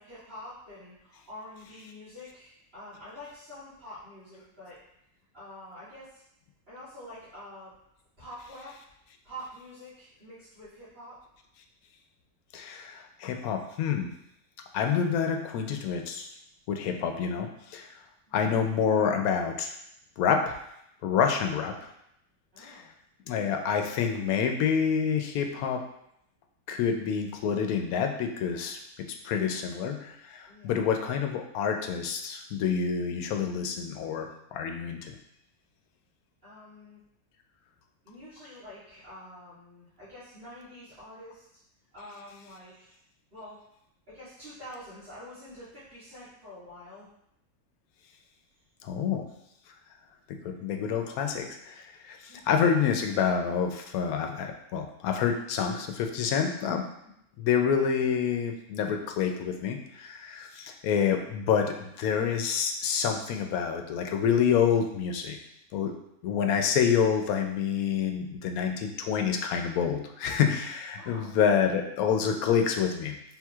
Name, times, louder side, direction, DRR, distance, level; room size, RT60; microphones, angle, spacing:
voice 1, 0.0-4.8 5.3-6.2 6.7-7.7 8.2-8.7 9.2-11.2 18.3-18.4 22.5-22.9 30.5-30.8 36.4-37.0 38.0-41.6 41.9-42.9 43.3-43.6 44.1-47.1 52.3-52.6 70.9-71.4, left 1 dB, 45° right, -16 dB, 2.0 m, -46 dB
voice 2, 12.5-14.1 14.7-16.3 16.7-17.9 18.3-19.7 20.2-20.6 21.0-21.7 22.6-22.8 23.3-25.8 26.7-28.8 29.2-35.1 48.8-49.3 50.3-56.9 57.4-65.4 65.7-65.9 66.2-73.1, left 7 dB, 85° left, 4 dB, 1.0 m, -27 dB
4.5 x 3.7 x 2.3 m, 0.77 s
omnidirectional pair, 1.5 m